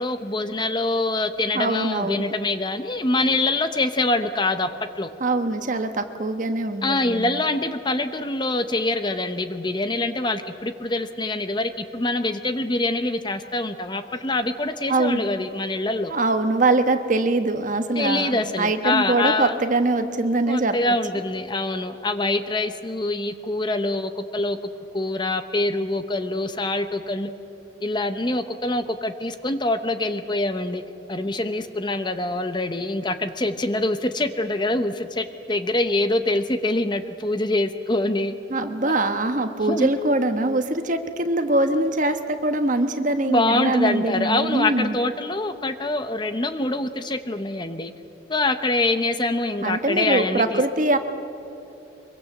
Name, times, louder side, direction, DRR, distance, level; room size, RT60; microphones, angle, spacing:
voice 1, 0.0-4.7 5.0-5.1 6.8-16.1 18.0-19.6 20.5-24.6 24.9-27.3 27.8-30.8 31.1-38.3 39.7-39.9 43.2-47.9 48.3-50.6, left 2 dB, 25° left, 9 dB, 0.8 m, -25 dB
voice 2, 1.5-2.3 5.2-7.3 14.9-15.2 16.1-21.0 38.5-45.0 49.6-51.0, right 2 dB, 40° right, 8 dB, 1.2 m, -23 dB
24.0 x 23.0 x 7.2 m, 2.9 s
head